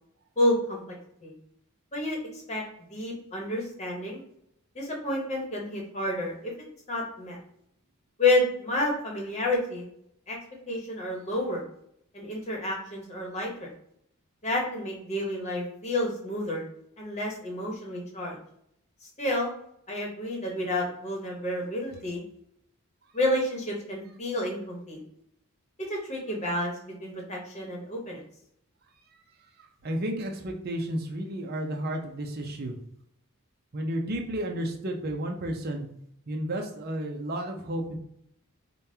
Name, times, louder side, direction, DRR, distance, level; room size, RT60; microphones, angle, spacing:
voice 1, 0.4-0.8 1.2-1.3 1.9-2.6 2.9-4.2 4.7-7.4 8.2-9.9 10.3-10.4 10.7-11.6 12.1-13.7 14.4-16.6 17.0-18.4 19.2-19.5 19.9-22.2 23.1-25.0 25.9-28.2, left 1 dB, 30° left, -1 dB, 1.1 m, -30 dB
voice 2, 29.8-32.8 33.7-35.9 36.3-38.0, right 1 dB, 45° right, 2 dB, 0.6 m, -32 dB
5.1 x 2.3 x 2.7 m, 0.72 s
head